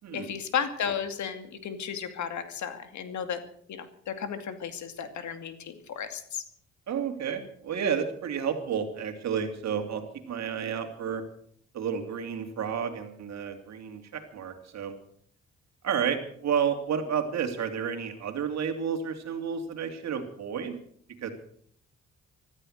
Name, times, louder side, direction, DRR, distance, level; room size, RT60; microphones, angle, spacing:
voice 1, 0.1-3.4 3.7-6.4, left 7 dB, 70° left, 8 dB, 2.4 m, -34 dB
voice 2, 6.9-11.2 11.7-14.9 15.8-20.8 21.2-21.3, right 7 dB, 60° right, 6 dB, 2.9 m, -31 dB
15.5 x 13.5 x 6.6 m, 0.64 s
cardioid pair, 90°, 30 cm